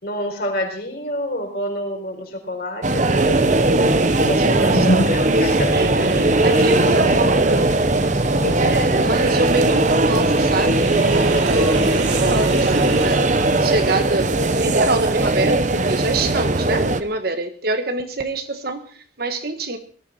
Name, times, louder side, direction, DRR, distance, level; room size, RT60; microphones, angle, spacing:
voice 1, 0.0-3.4 4.3-5.7 6.0-7.2 8.4-8.7, equal, 55° left, 2 dB, 4.5 m, -26 dB
sound 1, 2.8-17.0, right 2 dB, 40° right, 0.9 m, -18 dB
sound 2, 3.2-13.9, left 1 dB, 15° left, 1.5 m, -32 dB
voice 2, 3.9-4.8 5.7-7.7 8.6-19.8, right 2 dB, 55° right, 8 dB, 1.5 m, -25 dB
Sink (filling or washing), 10.2-14.2, right 3 dB, 80° right, 2.8 m, -31 dB
18.5 x 13.5 x 4.3 m, 0.43 s
head